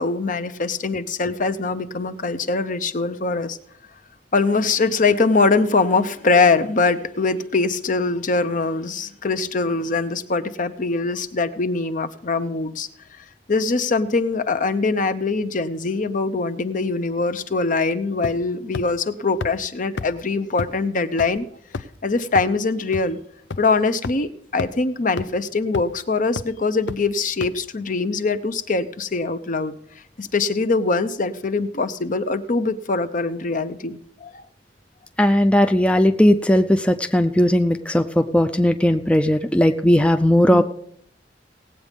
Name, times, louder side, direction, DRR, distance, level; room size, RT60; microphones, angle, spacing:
voice 1, 0.0-3.6 4.3-12.9 13.5-21.5 22.0-23.2 23.6-29.8 30.2-34.4 40.5-40.6, left 3 dB, 45° left, 11 dB, 0.7 m, -22 dB
sound 1, 18.2-18.5 18.7-18.8 19.4-19.5 20.0-20.1 20.6-20.7 21.2-21.3 21.7-22.0 22.3-22.4 22.9-23.0 23.5-23.6 24.0-24.1 24.6-24.7 25.2-25.3 25.7-26.0 26.4-26.5 26.9-27.0 27.4-27.5, left 4 dB, 80° left, 0.6 m, -28 dB
voice 2, 35.2-40.6, left 1 dB, 5° left, 6 dB, 0.5 m, -17 dB
18.0 x 8.3 x 5.2 m, 0.67 s
head